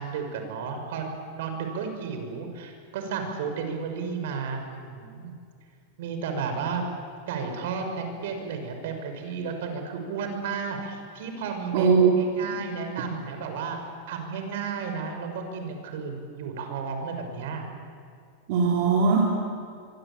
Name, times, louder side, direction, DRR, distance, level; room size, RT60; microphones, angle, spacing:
voice 1, 0.0-5.4 6.0-6.8 7.3-13.8 14.1-17.6, right 5 dB, 65° right, 5 dB, 6.0 m, -33 dB
voice 2, 11.7-12.1 12.5-12.6 18.5-19.2, right 5 dB, 50° right, -2 dB, 4.2 m, -20 dB
25.0 x 24.5 x 8.9 m, 2.3 s
supercardioid pair, 160°, 0 cm